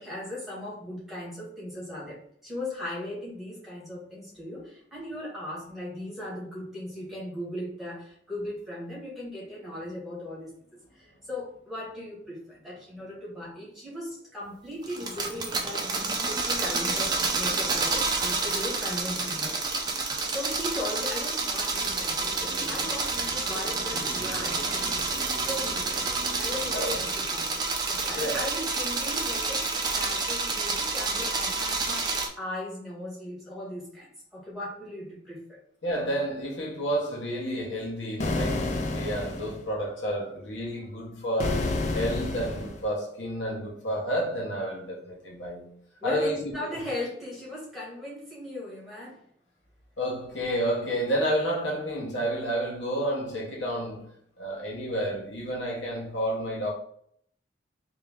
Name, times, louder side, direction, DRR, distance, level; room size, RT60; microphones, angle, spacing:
voice 1, 0.0-15.9 16.3-19.6 19.9-25.9 26.4-35.6 46.0-49.2, left 1 dB, ahead, 1.5 m, -38 dB
sound 1, 14.8-32.3, right 3 dB, 20° right, 0.5 m, -29 dB
sound 2, 21.7-27.0, right 2 dB, 80° right, 0.8 m, -42 dB
voice 2, 28.2-28.5 35.8-45.7 46.0-46.5 50.0-54.1 54.4-56.7, equal, 85° left, 1.1 m, -30 dB
sound 3, 38.2-39.6 41.4-42.8, left 2 dB, 40° left, 0.5 m, -29 dB
3.5 x 2.8 x 3.5 m
head